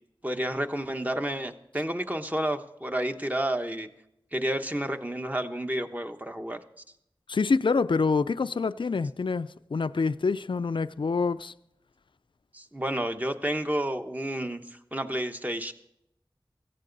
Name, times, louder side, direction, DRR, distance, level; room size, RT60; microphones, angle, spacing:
voice 1, 0.2-3.9 4.3-6.6 12.5-15.7, right 1 dB, 20° right, 1.1 m, -30 dB
voice 2, 7.3-11.5, left 4 dB, 70° left, 0.4 m, -26 dB
16.5 x 15.0 x 4.0 m
wide cardioid pair, 55°, 9 cm